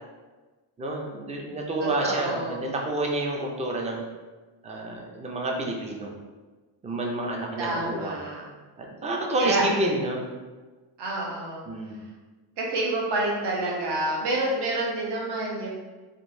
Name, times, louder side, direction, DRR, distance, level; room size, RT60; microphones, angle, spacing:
voice 1, 0.8-4.0 4.6-6.1 6.8-8.2 8.8-10.2 11.7-12.0, right 1 dB, 15° right, 0 dB, 0.4 m, -29 dB
voice 2, 1.8-2.6 7.6-8.4 9.4-9.7 11.0-11.7 12.6-15.7, right 2 dB, 60° right, -3 dB, 0.9 m, -28 dB
3.7 x 2.7 x 2.6 m, 1.3 s
cardioid pair, 135°, 47 cm